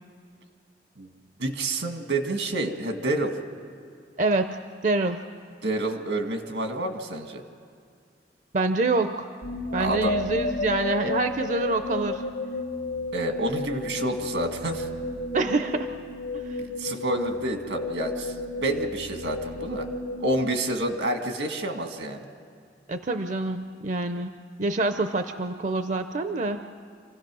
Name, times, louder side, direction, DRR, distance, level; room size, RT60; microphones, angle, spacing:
voice 1, 1.4-3.3 5.6-7.4 9.8-10.2 13.1-14.9 16.8-19.9 20.2-22.2, right 1 dB, 85° right, 5 dB, 1.8 m, -28 dB
voice 2, 4.2-4.6 4.8-5.2 8.5-9.3 9.7-12.2 15.3-15.9 16.3-16.6 22.9-24.3 24.6-26.6, right 2 dB, 45° right, 8 dB, 0.6 m, -26 dB
sound 1, 9.4-21.5, left 2 dB, 85° left, 1.8 m, -33 dB
27.5 x 16.0 x 6.2 m, 2.3 s
head